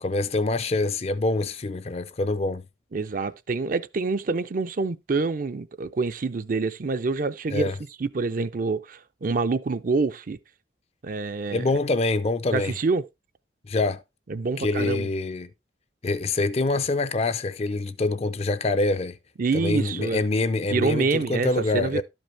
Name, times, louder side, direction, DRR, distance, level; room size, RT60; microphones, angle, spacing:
voice 1, 0.0-2.6 7.5-7.7 11.5-12.7 13.7-14.0 14.6-15.5 16.0-19.2 19.5-22.0, left 2 dB, 35° left, 0.5 m, -25 dB
voice 2, 2.9-7.7 8.0-10.4 11.0-11.6 12.5-13.0 14.3-15.1 19.4-20.2 20.7-22.0, right 4 dB, 50° right, 0.5 m, -26 dB
12.0 x 5.3 x 3.3 m
head